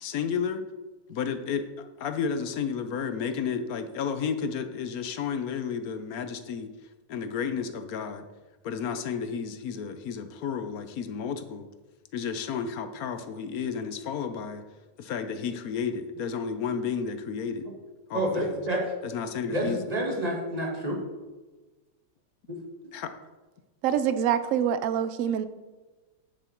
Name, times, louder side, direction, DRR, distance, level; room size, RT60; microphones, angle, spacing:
voice 1, 0.0-0.6 1.1-6.7 7.1-8.2 8.6-11.7 12.1-14.6 15.0-17.7 18.1-18.6 19.0-19.8 22.9-23.1, left 6 dB, 65° left, 9 dB, 1.0 m, -32 dB
voice 2, 18.1-18.8 19.5-21.0 22.5-22.6, right 1 dB, 20° right, -1 dB, 1.9 m, -28 dB
voice 3, 23.8-25.5, right 9 dB, 80° right, 12 dB, 0.7 m, -25 dB
9.1 x 7.4 x 4.5 m, 1.2 s
omnidirectional pair, 2.0 m